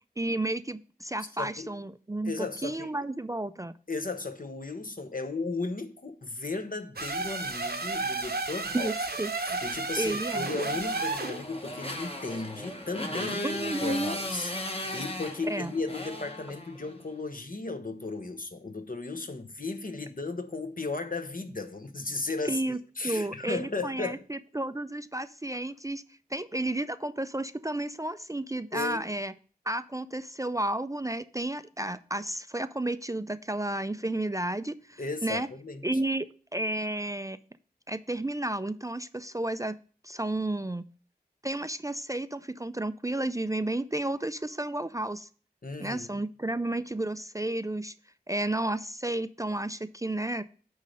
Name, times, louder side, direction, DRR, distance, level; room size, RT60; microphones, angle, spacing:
voice 1, 0.2-3.7 8.7-9.3 10.0-10.5 13.4-14.2 15.5-15.7 22.5-26.0 26.3-29.3 29.7-35.5 35.8-37.4 37.9-39.8 40.0-40.9 41.4-45.3 45.8-47.9 48.3-50.4, right 1 dB, 20° right, 0.3 m, -32 dB
voice 2, 1.4-1.8 2.2-2.9 3.9-8.9 9.4-22.6 23.0-24.3 28.7-29.0 35.0-35.8 45.6-46.2, left 3 dB, 55° left, 0.9 m, -35 dB
sound 1, 7.0-11.4, right 3 dB, 70° right, 0.8 m, -32 dB
Motorcycle, 10.3-17.0, left 1 dB, 35° left, 1.2 m, -37 dB
9.2 x 3.2 x 6.4 m
wide cardioid pair, 50°, 17 cm